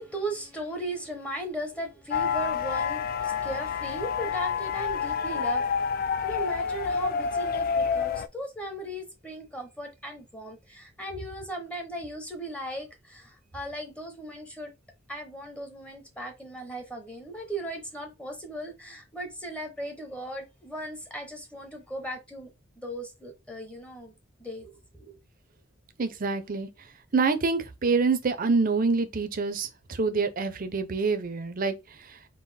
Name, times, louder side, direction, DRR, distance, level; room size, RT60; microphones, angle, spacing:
voice 1, 0.0-5.8 6.2-14.7 15.1-22.5 22.8-24.1 24.4-25.2, right 1 dB, 5° left, 0.8 m, -37 dB
sound 1, 2.1-8.3, left 6 dB, 50° left, 0.3 m, -28 dB
voice 2, 26.0-26.7 27.1-31.7, right 4 dB, 45° right, 0.6 m, -26 dB
3.9 x 2.6 x 4.1 m
head